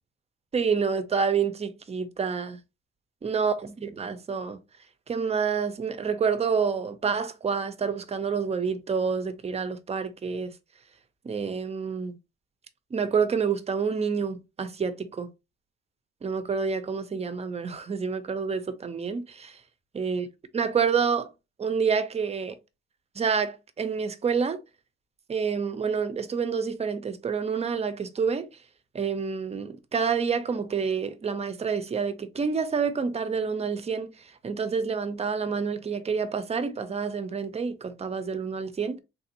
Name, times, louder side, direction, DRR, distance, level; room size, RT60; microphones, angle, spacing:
voice 1, 0.5-2.6 3.2-4.6 5.1-10.5 11.2-12.2 12.9-15.3 16.2-19.6 19.9-20.3 20.5-21.3 21.6-22.6 23.2-24.6 25.3-28.5 28.9-39.0, right 6 dB, 30° right, 0.6 m, -28 dB
3.4 x 2.5 x 2.8 m
cardioid pair, 90°, 20 cm